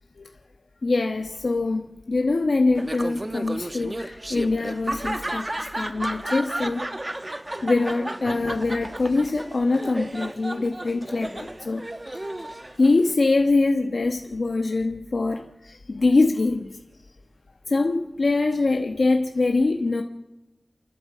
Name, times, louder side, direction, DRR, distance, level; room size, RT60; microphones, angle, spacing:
voice 1, 0.8-6.9 7.6-16.8 17.7-20.0, left 3 dB, 70° left, 1.1 m, -24 dB
Laughter, 2.8-13.1, right 1 dB, 25° right, 1.1 m, -33 dB
29.0 x 12.0 x 7.4 m
wide cardioid pair, 75°, 0 cm